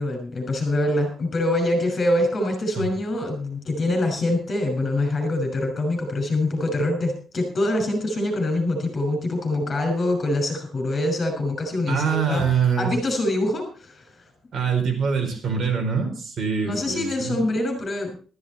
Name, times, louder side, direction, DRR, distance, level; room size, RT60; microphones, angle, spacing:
voice 1, 0.0-12.4 12.8-14.1 16.6-18.2, left 1 dB, 30° left, 3 dB, 6.2 m, -24 dB
voice 2, 11.9-12.9 14.5-17.3, right 6 dB, 45° right, 3 dB, 4.5 m, -24 dB
14.5 x 14.0 x 4.3 m, 0.40 s
cardioid pair, 155°, 0 cm